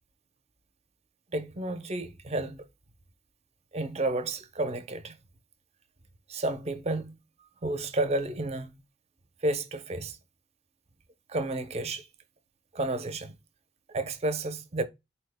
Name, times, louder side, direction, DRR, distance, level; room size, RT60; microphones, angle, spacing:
voice 1, 1.3-2.7 3.7-5.1 6.3-7.2 7.6-8.7 9.4-10.2 11.3-12.1 12.7-13.3 13.9-14.8, right 2 dB, 35° right, 0.5 m, -31 dB
4.3 x 2.0 x 3.4 m
head